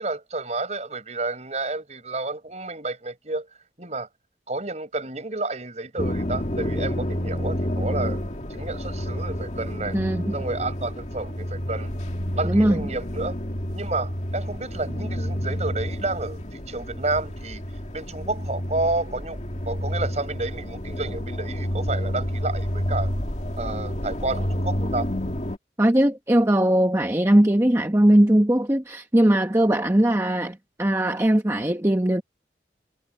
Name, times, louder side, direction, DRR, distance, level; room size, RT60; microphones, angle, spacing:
voice 1, 0.0-3.5 3.8-4.1 4.5-8.2 8.5-10.0 10.3-11.9 12.3-13.3 13.7-17.6 17.9-19.4 19.7-23.1 23.6-25.1, right 2 dB, 40° right, 5.5 m, -30 dB
sound 1, 6.0-25.6, equal, 40° left, 2.3 m, -29 dB
voice 2, 9.9-10.3 12.4-12.8 25.8-32.2, right 1 dB, 15° right, 1.0 m, -20 dB
head